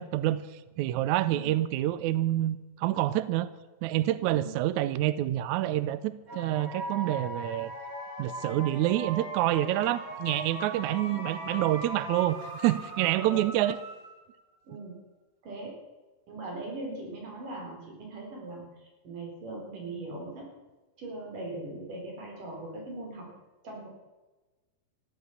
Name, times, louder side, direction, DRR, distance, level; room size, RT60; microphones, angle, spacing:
voice 1, 0.0-3.5 3.8-7.7 8.2-13.8, right 14 dB, 80° right, 15 dB, 1.7 m, -27 dB
sound 1, 6.3-14.4, equal, 20° right, 4.0 m, -39 dB
voice 2, 13.2-13.5 14.7-14.9 15.4-15.7 16.3-20.5 21.0-23.3 23.6-23.9, right 2 dB, 65° right, 0 dB, 5.5 m, -40 dB
14.5 x 13.0 x 7.0 m, 1.2 s
omnidirectional pair, 4.0 m